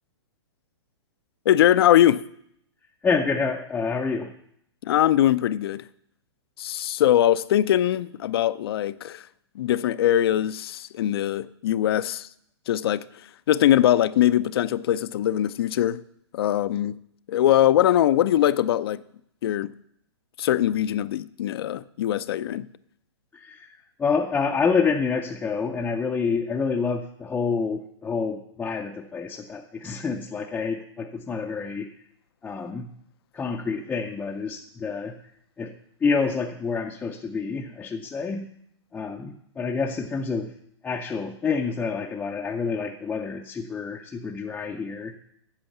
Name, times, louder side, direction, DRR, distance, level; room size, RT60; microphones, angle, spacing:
voice 1, 1.5-2.2 4.9-5.9 6.6-9.3 9.6-12.3 12.7-13.0 13.5-16.0 16.3-17.0 17.3-19.0 19.4-19.7 20.4-22.7, left 12 dB, 60° left, 0.5 m, -21 dB
voice 2, 3.0-4.3 23.3-31.9 32.4-32.9 33.3-35.2 35.6-38.5 38.9-40.5 40.8-45.2, left 5 dB, 10° left, 0.5 m, -28 dB
8.8 x 6.9 x 7.1 m
hypercardioid pair, 145°, 15 cm